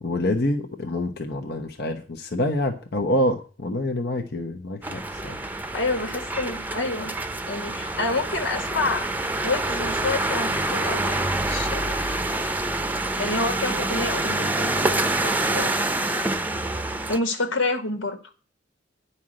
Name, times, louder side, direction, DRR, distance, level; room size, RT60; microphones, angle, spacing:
voice 1, 0.0-5.4, left 1 dB, 60° left, 3 dB, 1.1 m, -26 dB
sound 1, 4.8-17.2, right 2 dB, 10° right, 0.7 m, -26 dB
voice 2, 5.7-7.1 7.5-9.1 9.4-11.9 13.2-15.9 17.1-18.2, left 3 dB, 90° left, 6 dB, 2.2 m, -28 dB
10.0 x 5.7 x 7.6 m, 0.37 s
head